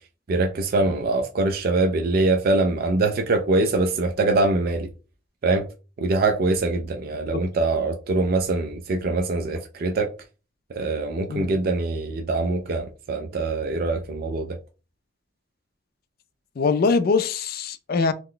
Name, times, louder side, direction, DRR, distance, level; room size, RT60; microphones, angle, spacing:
voice 1, 0.3-4.9 5.4-5.7 6.0-10.1 10.7-14.6, right 2 dB, 55° right, 0.4 m, -23 dB
voice 2, 16.6-18.1, left 4 dB, 55° left, 0.4 m, -23 dB
2.9 x 2.1 x 3.7 m
head